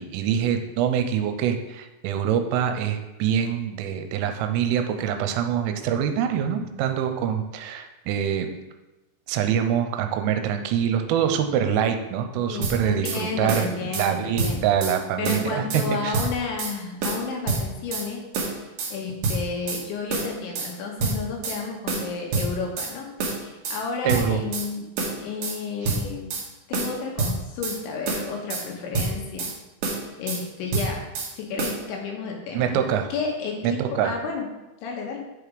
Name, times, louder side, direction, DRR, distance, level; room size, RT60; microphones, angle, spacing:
voice 1, 0.0-8.5 9.3-16.2 24.0-24.4 25.8-26.0 32.5-33.1 33.6-34.1, right 8 dB, 90° right, 7 dB, 3.2 m, -25 dB
voice 2, 12.5-14.7 15.2-18.2 18.9-24.9 25.2-26.3 26.7-29.5 30.2-31.1 31.3-32.8 33.1-34.5 34.8-35.2, left 4 dB, 75° left, 0 dB, 3.3 m, -31 dB
sound 1, 12.6-13.2 13.5-14.1 14.4-15.0 15.3-15.9 16.1-16.7 17.0-18.1 18.3-18.9 19.2-19.8 20.1-20.7 21.0-21.6 21.9-22.9 23.2-23.8 24.1-24.7 25.0-25.6 25.8-26.5 26.7-27.8 28.1-28.7 28.9-29.5 29.8-30.4 30.7-31.3 31.6-31.8, right 3 dB, 70° right, 2.0 m, -27 dB
7.8 x 4.9 x 4.9 m, 1.0 s
omnidirectional pair, 5.7 m